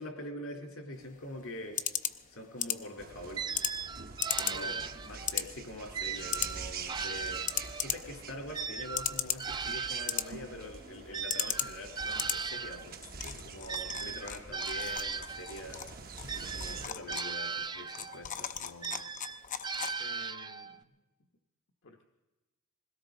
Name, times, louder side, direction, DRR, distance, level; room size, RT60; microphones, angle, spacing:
voice 1, 0.0-1.8 2.3-3.4 4.3-7.6 7.8-13.0 13.5-15.9 16.5-19.0, left 1 dB, 80° left, 2 dB, 3.5 m, -44 dB
sound 1, 0.9-20.3, left 9 dB, 40° left, 0.6 m, -39 dB
sound 2, 3.0-16.9, right 4 dB, 45° right, 1.0 m, -46 dB
sound 3, 3.4-5.4 5.9-8.0 8.5-12.9 13.7-15.7 16.3-18.3 18.8-20.8, right 5 dB, 20° right, 0.5 m, -38 dB
voice 2, 4.5-4.9 13.2-13.4 20.0-20.9 21.8-22.0, left 2 dB, 60° left, 2 dB, 1.2 m, -51 dB
21.0 x 17.0 x 3.9 m, 1.1 s
head